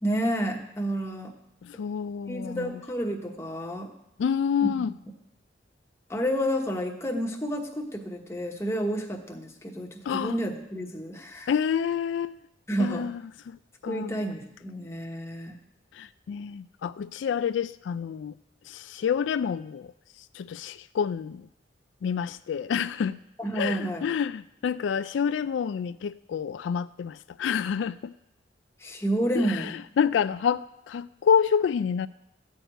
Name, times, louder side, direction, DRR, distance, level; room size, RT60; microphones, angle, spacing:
voice 1, 0.0-1.3 2.3-3.9 4.6-4.9 6.1-11.5 12.7-13.1 13.8-15.5 23.4-24.0 28.8-29.8, right 1 dB, 15° left, 1 dB, 1.1 m, -30 dB
voice 2, 1.6-2.7 4.2-4.9 10.1-10.4 11.5-12.4 12.8-13.2 13.5-13.6 13.8-14.2 16.0-18.3 18.7-19.9 20.3-21.4 22.0-23.2 23.5-28.1 29.3-32.1, left 7 dB, 80° left, 13 dB, 0.3 m, -28 dB
13.5 x 4.7 x 9.0 m, 0.84 s
head